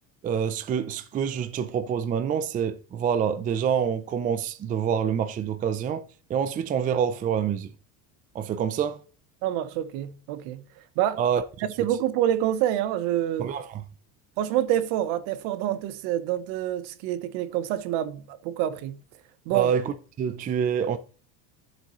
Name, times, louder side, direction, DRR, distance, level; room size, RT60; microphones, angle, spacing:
voice 1, 0.2-6.0 6.3-7.7 8.3-9.0 11.2-11.4 13.4-13.8 19.5-21.0, right 8 dB, 20° right, 0.4 m, -26 dB
voice 2, 9.4-10.6 11.0-11.2 11.8-13.5 14.4-19.0 19.5-19.7, right 12 dB, 65° right, 1.0 m, -27 dB
11.5 x 7.5 x 3.0 m
cardioid pair, 145°, 42 cm